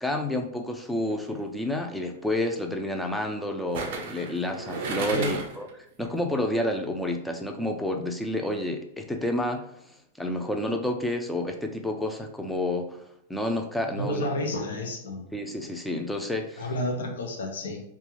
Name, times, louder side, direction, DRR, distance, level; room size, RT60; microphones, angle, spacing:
voice 1, 0.0-5.7 6.0-9.7 10.2-13.0 13.3-14.3 15.3-16.7, left 1 dB, 5° left, 2 dB, 0.3 m, -29 dB
sound 1, 1.1-1.4 3.7-5.7 6.1-6.2, right 4 dB, 65° right, 0.5 m, -34 dB
voice 2, 13.9-15.3 16.6-17.8, left 1 dB, 85° left, 3 dB, 0.6 m, -30 dB
2.3 x 2.2 x 3.0 m, 0.73 s
hypercardioid pair, 125°, 0 cm